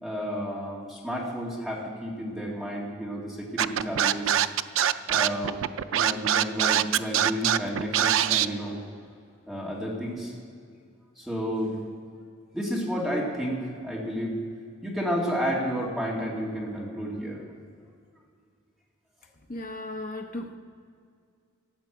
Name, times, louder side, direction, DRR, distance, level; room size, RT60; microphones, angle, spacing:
voice 1, 0.0-4.5 5.1-5.6 5.9-8.8 9.5-10.3 11.2-11.8 12.5-14.3 14.8-17.4, equal, ahead, -5 dB, 2.4 m, -31 dB
Scratching (performance technique), 3.6-8.5, right 10 dB, 90° right, 0.4 m, -23 dB
voice 2, 19.5-20.6, left 1 dB, 45° left, 4 dB, 0.8 m, -36 dB
14.0 x 8.2 x 8.1 m, 2.2 s
head